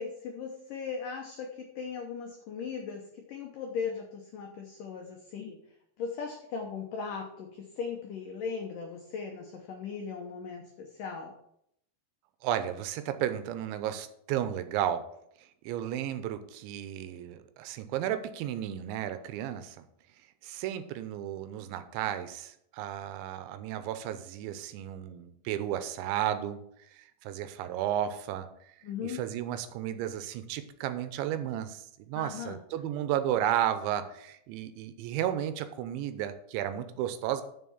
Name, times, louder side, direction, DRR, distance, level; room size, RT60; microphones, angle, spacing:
voice 1, 0.0-5.6 6.0-11.3 28.8-29.2 32.2-32.6, left 6 dB, 85° left, 2 dB, 1.8 m, -38 dB
voice 2, 12.4-15.0 15.6-19.8 20.4-26.6 26.9-28.5 29.0-37.4, right 11 dB, 80° right, 10 dB, 3.1 m, -33 dB
7.3 x 6.8 x 7.2 m, 0.72 s
omnidirectional pair, 5.3 m